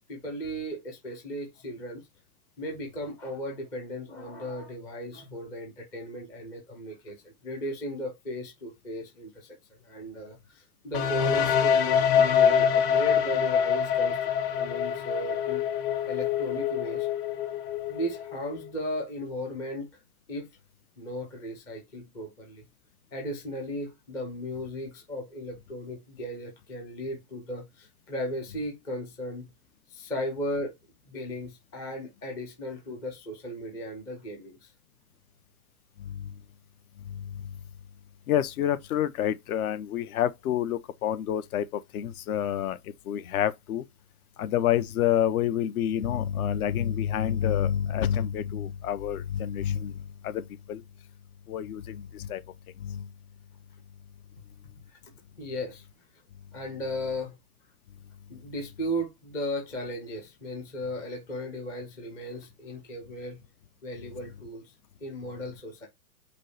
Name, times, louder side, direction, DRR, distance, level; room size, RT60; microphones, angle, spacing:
voice 1, 0.1-2.1 2.6-9.5 9.8-14.3 14.5-15.6 16.1-17.1 17.9-20.0 20.3-20.5 21.0-22.6 23.1-29.5 29.9-30.8 31.1-34.7 55.4-55.9 56.5-57.3 58.3-63.4 63.8-64.7 65.0-65.9, equal, 10° left, 0.4 m, -36 dB
sound 1, 10.9-18.7, left 8 dB, 35° left, 0.8 m, -25 dB
voice 2, 38.3-42.8 43.1-43.8 44.4-49.9 50.2-50.4 50.7-50.8 51.5-52.4 52.8-53.0, left 10 dB, 65° left, 0.8 m, -28 dB
5.2 x 2.1 x 4.7 m
hypercardioid pair, 145°, 46 cm